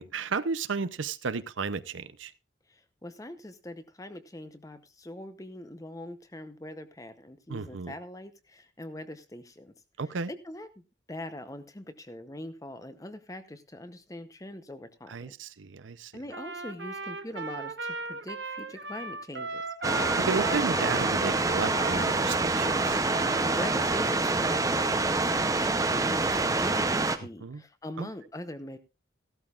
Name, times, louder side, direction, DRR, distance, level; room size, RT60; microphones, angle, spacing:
voice 1, 0.0-2.3 7.5-7.9 10.0-10.3 15.1-16.1 20.2-23.0 27.4-27.6 28.0-28.1, right 4 dB, 90° right, 14 dB, 0.7 m, -33 dB
voice 2, 2.7-9.7 10.3-10.7 11.1-15.3 16.1-19.6 23.2-28.8, left 1 dB, 20° left, 11 dB, 0.8 m, -42 dB
Trumpet, 16.3-24.1, right 3 dB, 65° right, 0.9 m, -37 dB
sound 1, 19.8-27.2, right 3 dB, 20° right, 0.7 m, -26 dB
15.5 x 12.5 x 2.4 m, 0.27 s
head